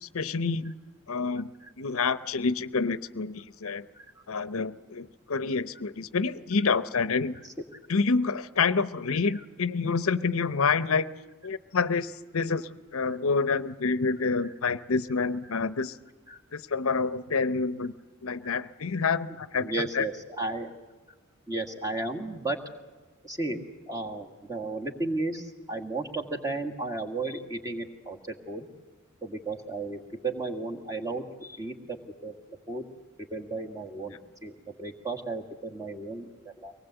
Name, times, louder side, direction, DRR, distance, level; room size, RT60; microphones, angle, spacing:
voice 1, 0.0-0.7 1.1-1.5 1.8-3.9 4.3-7.4 7.9-11.1 11.4-16.0 16.5-17.9 18.2-20.1, left 4 dB, 70° left, 15 dB, 0.7 m, -28 dB
voice 2, 19.6-20.7 21.5-22.6 23.2-23.6 23.9-28.7 29.2-32.3 32.7-32.9 33.3-34.5 34.8-36.7, right 2 dB, 15° right, 2 dB, 1.8 m, -34 dB
24.0 x 19.5 x 8.0 m, 1.3 s
head